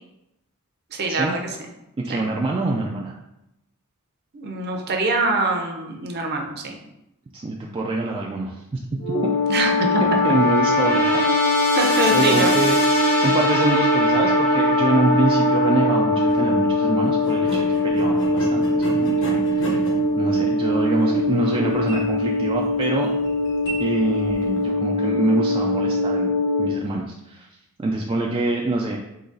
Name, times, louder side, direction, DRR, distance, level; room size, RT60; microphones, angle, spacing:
voice 1, 0.9-1.6 2.1-2.2 4.3-6.8 9.5-10.0 11.8-12.6, right 2 dB, 50° right, 2 dB, 0.7 m, -24 dB
voice 2, 2.1-3.1 7.3-8.8 10.2-11.1 12.1-12.8 13.2-23.1 23.8-26.3 26.6-27.5 27.8-29.0, right 2 dB, 25° right, -1 dB, 0.3 m, -25 dB
sound 1, 9.0-26.7, left 1 dB, 85° left, 1.6 m, -21 dB
sound 2, 16.1-16.4 17.2-24.7, equal, 55° left, 1.0 m, -35 dB
3.9 x 2.9 x 3.8 m, 0.87 s
head